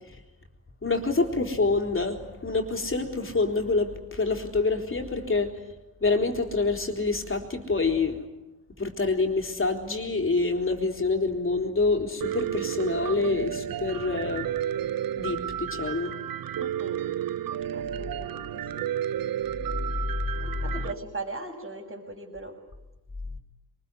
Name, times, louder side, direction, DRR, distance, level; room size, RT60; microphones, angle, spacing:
voice 1, 0.8-5.5 6.0-8.2 8.8-14.5 15.2-16.1, left 3 dB, 30° left, 4 dB, 4.0 m, -26 dB
Piano, 12.2-20.9, right 10 dB, 50° right, 0.9 m, -32 dB
voice 2, 16.5-17.0 17.7-18.9 20.4-22.5, right 2 dB, 25° right, -6 dB, 6.0 m, -39 dB
23.5 x 20.5 x 9.8 m, 1.0 s
supercardioid pair, 70°, 44 cm